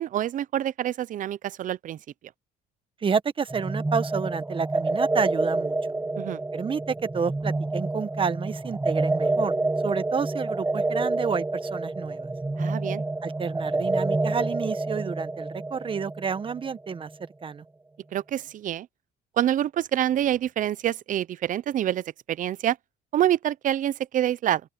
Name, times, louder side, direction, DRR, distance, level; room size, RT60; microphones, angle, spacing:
voice 1, 0.0-2.0 6.2-6.4 12.6-13.0 18.1-18.9 19.4-22.8 23.1-24.6, right 11 dB, 50° right, 0.6 m, -26 dB
voice 2, 3.0-5.8 6.5-9.5 9.8-12.3 13.2-17.1 17.4-17.6, right 6 dB, 30° right, 1.2 m, -29 dB
sound 1, 3.5-17.1, right 2 dB, 10° right, 0.6 m, -28 dB
open air
cardioid pair, 110°, 17 cm